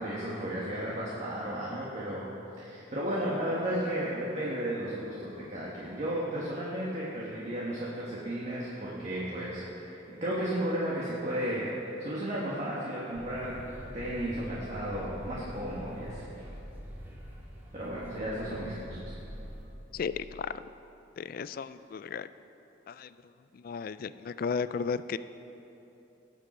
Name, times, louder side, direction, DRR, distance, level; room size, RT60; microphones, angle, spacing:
voice 1, 0.0-2.3 2.6-13.6 13.9-16.5 17.7-19.2, right 1 dB, 40° right, -7 dB, 1.6 m, -34 dB
sound 1, 13.1-19.7, equal, 10° right, 1.8 m, -44 dB
voice 2, 19.9-20.6 21.2-22.3 22.9-23.1 23.5-25.2, left 5 dB, 50° left, 14 dB, 0.3 m, -34 dB
18.5 x 7.6 x 4.4 m, 3.0 s
head